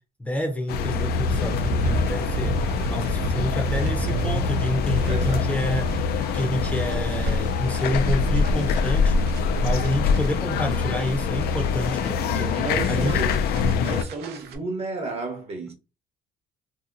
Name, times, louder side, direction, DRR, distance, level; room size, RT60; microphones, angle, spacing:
voice 1, 0.2-2.5 2.9-9.1 9.6-12.5 12.9-13.1, left 1 dB, 10° left, 0.6 m, -28 dB
sound 1, 0.7-14.0, left 5 dB, 70° left, 0.4 m, -24 dB
sound 2, 1.2-14.6, right 2 dB, 70° right, 0.5 m, -32 dB
voice 2, 5.1-5.6 12.6-15.7, right 3 dB, 40° right, 0.8 m, -32 dB
2.8 x 2.8 x 2.5 m
cardioid pair, 110°, 17 cm